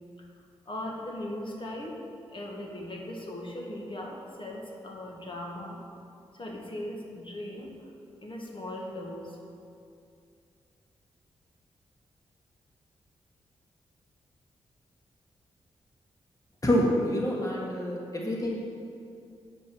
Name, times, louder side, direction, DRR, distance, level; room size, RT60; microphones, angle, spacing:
voice 1, 0.7-2.0 2.3-5.8 6.3-7.8 8.2-9.4, left 1 dB, 45° left, 0 dB, 1.9 m, -38 dB
voice 2, 16.6-18.6, equal, 30° left, -3 dB, 2.0 m, -27 dB
8.8 x 5.2 x 7.1 m, 2.5 s
supercardioid pair, 45°, 12 cm